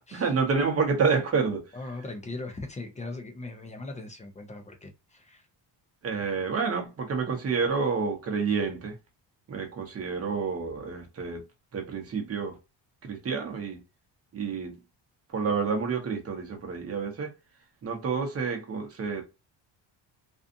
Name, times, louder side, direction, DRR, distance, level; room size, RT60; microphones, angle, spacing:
voice 1, 0.1-1.7 6.0-9.0 9.5-11.4 11.7-12.6 13.0-13.8 14.3-14.8 15.3-17.3 17.8-19.2, right 5 dB, 30° right, 0.9 m, -29 dB
voice 2, 1.7-5.5, left 2 dB, 15° left, 0.4 m, -39 dB
2.6 x 2.3 x 2.5 m
cardioid pair, 155°, 45 cm